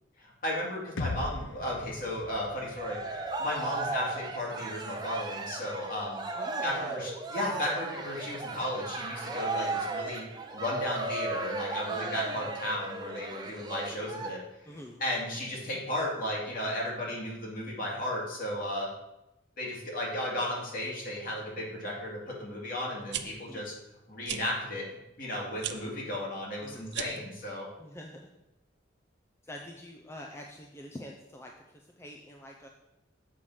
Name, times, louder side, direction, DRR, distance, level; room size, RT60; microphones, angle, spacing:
voice 1, 0.2-6.2 6.6-10.2 10.5-14.4 14.7-18.9 19.6-23.7 24.1-24.8 25.2-27.7, left 1 dB, 50° left, -4 dB, 2.4 m, -34 dB
sound 1, 1.0-4.9, left 2 dB, 80° left, 0.7 m, -40 dB
Cheering, 2.5-14.3, right 3 dB, 20° right, 0.8 m, -36 dB
voice 2, 6.4-7.0 14.7-15.0 23.5-23.7 26.6-26.9 27.8-28.3 29.5-32.7, left 1 dB, 15° left, 1 dB, 0.5 m, -46 dB
sound 2, 22.9-23.2 24.2-24.4 25.6-25.8 26.9-27.3, right 11 dB, 60° right, 0.5 m, -35 dB
7.3 x 4.9 x 5.6 m, 0.93 s
head